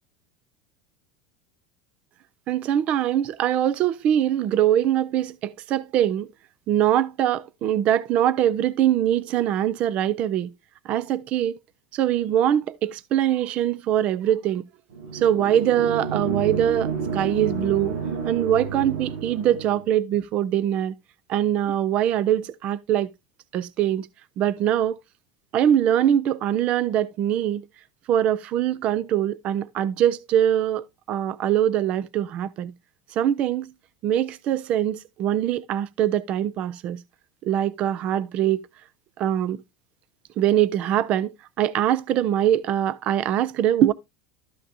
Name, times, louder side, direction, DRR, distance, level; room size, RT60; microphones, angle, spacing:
voice 1, 2.5-6.3 6.7-10.5 10.8-11.6 11.9-14.6 15.1-18.0 18.2-20.9 21.3-23.1 23.5-24.1 24.4-25.0 25.5-27.6 28.1-32.7 33.1-33.7 34.0-37.0 37.4-38.7 39.2-39.6 40.4-43.9, right 11 dB, 30° right, 0.4 m, -23 dB
sound 1, 14.9-19.8, right 5 dB, 70° right, 6.4 m, -30 dB
12.5 x 5.8 x 2.6 m
supercardioid pair, 180°, 4 cm